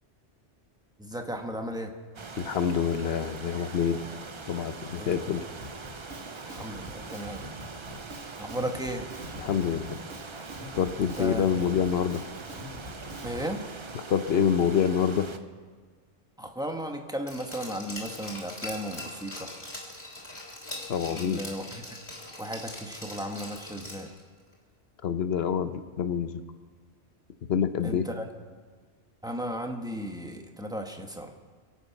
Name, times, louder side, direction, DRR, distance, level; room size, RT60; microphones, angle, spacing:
voice 1, 1.0-1.9 5.0-5.4 6.4-7.4 8.4-9.1 11.0-11.6 13.2-13.7 16.4-19.5 21.1-21.8 22.4-24.1 27.8-28.2 29.2-31.3, equal, 5° right, 3 dB, 1.1 m, -35 dB
sound 1, 2.1-15.4, right 4 dB, 30° right, 0.6 m, -42 dB
voice 2, 2.4-4.0 4.5-5.4 9.4-10.0 10.8-12.2 14.1-15.3 20.9-21.4 25.0-26.4 27.5-28.1, left 8 dB, 60° left, 10 dB, 1.0 m, -26 dB
Drum kit, 5.6-13.5, left 1 dB, 85° right, 2.4 m, -44 dB
Glass, 17.3-24.2 24.5-24.6, left 1 dB, 20° left, 3.3 m, -41 dB
23.0 x 8.5 x 5.9 m, 1.5 s
omnidirectional pair, 1.3 m